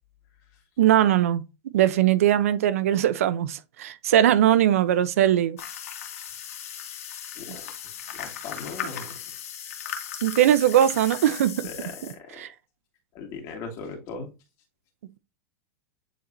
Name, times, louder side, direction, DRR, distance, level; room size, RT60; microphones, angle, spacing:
voice 1, 0.8-1.4 1.7-5.6 10.2-11.7 12.4-12.5, right 11 dB, 85° right, 0.7 m, -20 dB
sound 1, 5.6-12.1, left 9 dB, 90° left, 1.7 m, -37 dB
voice 2, 8.1-9.1 11.6-12.5 13.1-14.3, left 4 dB, 45° left, 2.5 m, -38 dB
9.2 x 4.4 x 2.7 m
supercardioid pair, 140°, 7 cm